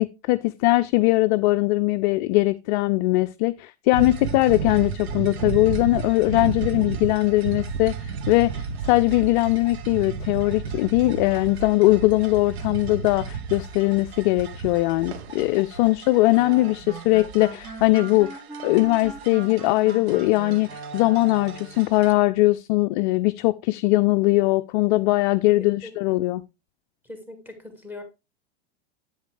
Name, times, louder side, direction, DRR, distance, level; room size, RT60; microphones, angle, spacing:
voice 1, 0.0-18.3 18.6-26.4, left 20 dB, 50° left, 0.4 m, -21 dB
sound 1, 3.9-22.1, right 5 dB, 75° right, 1.0 m, -34 dB
sound 2, 16.3-21.8, right 4 dB, 30° right, 2.6 m, -39 dB
voice 2, 25.6-25.9 27.0-28.0, left 2 dB, 5° right, 2.5 m, -41 dB
8.0 x 7.9 x 3.2 m
hypercardioid pair, 105°, 32 cm